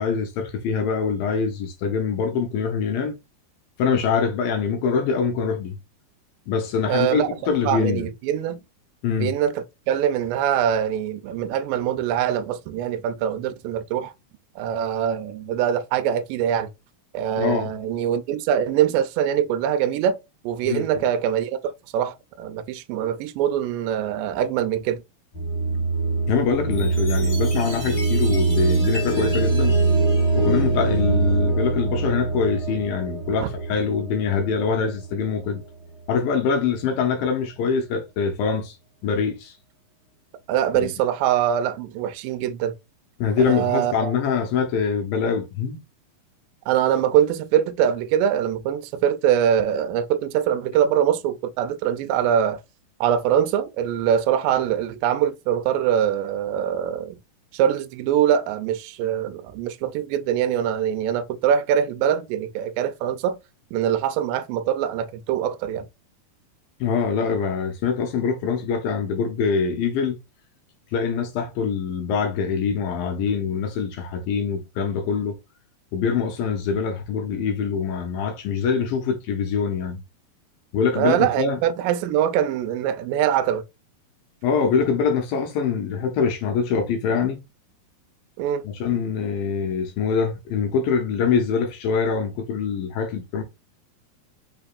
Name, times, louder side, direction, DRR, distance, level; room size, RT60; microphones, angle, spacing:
voice 1, 0.0-3.2 3.8-5.8 6.5-8.1 9.0-9.4 17.4-17.7 20.6-20.9 26.3-29.8 30.3-35.6 36.1-38.8 39.0-39.5 40.7-40.9 43.2-45.8 66.8-70.2 70.9-75.4 75.9-80.0 80.7-81.6 84.4-87.4 88.6-93.4, left 6 dB, 75° left, 2.6 m, -24 dB
voice 2, 6.9-7.3 7.6-8.6 9.2-14.1 14.6-16.7 17.1-20.2 20.4-25.0 33.4-33.5 40.5-42.7 43.5-44.1 46.7-52.6 53.0-57.2 57.5-63.4 63.7-65.8 81.0-83.6 88.4-88.7, right 9 dB, 80° right, 2.2 m, -23 dB
sound 1, 25.3-35.2, right 3 dB, 50° left, 1.8 m, -23 dB
Chime, 26.7-31.3, left 1 dB, 25° left, 0.8 m, -39 dB
5.8 x 3.4 x 2.5 m
omnidirectional pair, 4.3 m